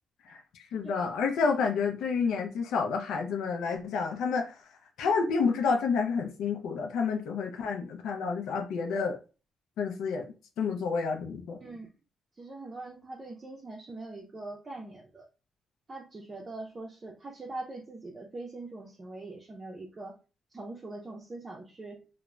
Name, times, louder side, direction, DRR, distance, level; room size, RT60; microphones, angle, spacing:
voice 1, 0.3-4.6 5.0-9.2 9.8-11.6, left 5 dB, 80° left, 0.4 m, -29 dB
voice 2, 11.6-11.9 12.4-15.2 15.9-20.2 20.5-22.1, right 2 dB, 30° right, 0.5 m, -42 dB
2.3 x 2.0 x 3.1 m
cardioid pair, 90°, 0 cm